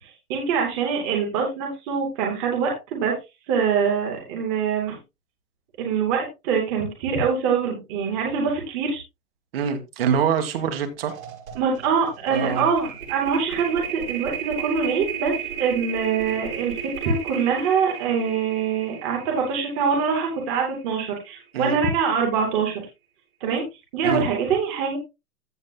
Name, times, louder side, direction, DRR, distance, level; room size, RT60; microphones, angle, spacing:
voice 1, 0.0-3.2 3.5-5.0 5.8-9.0 11.6-22.8 23.4-23.6 23.9-25.0, right 6 dB, 10° right, 0.6 m, -24 dB
voice 2, 9.5-11.2 12.3-12.7 21.5-21.8 24.0-24.3, right 7 dB, 40° right, 1.8 m, -24 dB
sound 1, 10.5-10.7 11.0-21.3, right 8 dB, 60° right, 6.3 m, -35 dB
14.5 x 7.1 x 2.3 m
hypercardioid pair, 170°, 44 cm